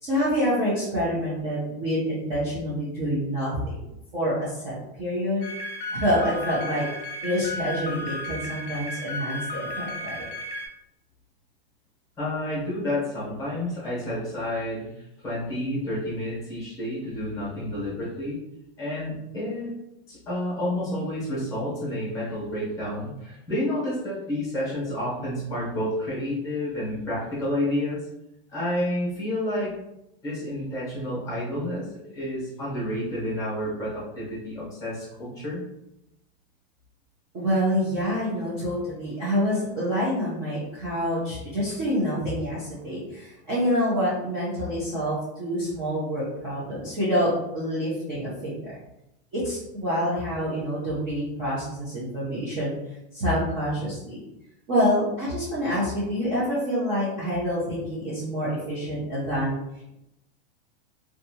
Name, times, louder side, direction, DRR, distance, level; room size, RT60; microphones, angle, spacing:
voice 1, 0.0-3.7 4.1-5.4 5.9-6.8 7.2-10.3 37.3-48.7 49.3-52.8 53.1-54.2 54.7-59.6, equal, 20° right, -10 dB, 0.5 m, -27 dB
sound 1, 5.4-10.7, left 1 dB, 60° left, 0.6 m, -34 dB
voice 2, 12.2-18.4 18.8-19.7 20.1-28.1 28.5-29.7 30.2-35.6, left 1 dB, 10° left, -7 dB, 0.9 m, -30 dB
2.6 x 2.3 x 2.7 m, 0.88 s
supercardioid pair, 175°, 32 cm